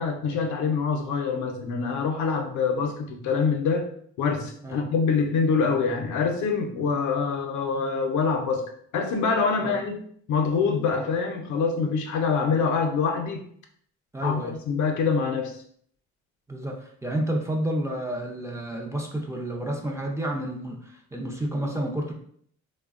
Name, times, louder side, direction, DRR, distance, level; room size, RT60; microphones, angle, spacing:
voice 1, 0.0-3.9 4.2-10.0 10.3-13.4 14.2-15.5, left 5 dB, 75° left, 4 dB, 0.6 m, -25 dB
voice 2, 14.1-14.5 16.5-22.1, right 1 dB, 10° right, 0 dB, 0.5 m, -30 dB
3.2 x 2.1 x 2.4 m, 0.62 s
cardioid pair, 90°, 30 cm